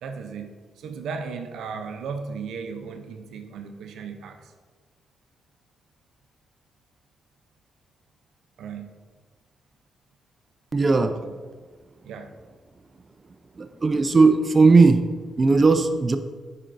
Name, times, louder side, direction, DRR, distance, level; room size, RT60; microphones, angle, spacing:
voice 1, 0.0-0.5 0.8-4.5 8.6-8.9 11.0-11.3 12.0-12.3, right 5 dB, 85° right, 6 dB, 0.5 m, -36 dB
voice 2, 10.7-11.1 13.6-15.1 15.4-16.2, right 3 dB, 35° right, 8 dB, 0.4 m, -17 dB
9.8 x 5.1 x 2.6 m, 1.5 s
cardioid pair, 75°, 0 cm